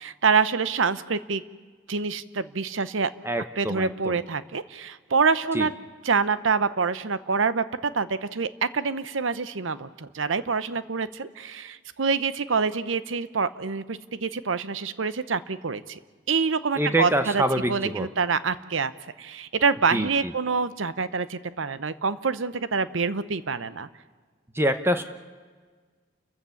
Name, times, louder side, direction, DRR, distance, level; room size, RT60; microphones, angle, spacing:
voice 1, 0.0-1.4 1.9-3.1 3.6-5.7 6.0-16.0 16.3-18.9 19.2-23.9, right 5 dB, 90° right, 15 dB, 0.8 m, -26 dB
voice 2, 3.2-4.1 5.5-5.7 16.8-18.1 19.9-20.3 24.5-25.0, right 1 dB, 10° right, 9 dB, 0.9 m, -25 dB
29.5 x 15.0 x 7.1 m, 1.5 s
head